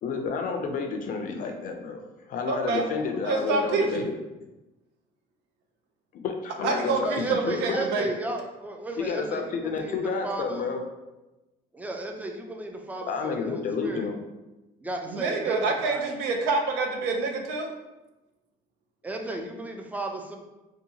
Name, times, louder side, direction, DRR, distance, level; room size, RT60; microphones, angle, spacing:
voice 1, 0.0-4.1 6.1-7.8 9.0-10.8 13.1-14.1, left 5 dB, 55° left, 4 dB, 0.4 m, -30 dB
voice 2, 2.5-2.8 3.2-4.1 6.6-8.1 15.1-17.7, right 3 dB, 85° right, 3 dB, 0.5 m, -27 dB
voice 3, 7.0-10.7 11.7-14.1 14.8-16.1 19.0-20.4, right 2 dB, 10° right, 2 dB, 0.3 m, -35 dB
2.7 x 2.2 x 2.7 m, 1.0 s
cardioid pair, 110°, 17 cm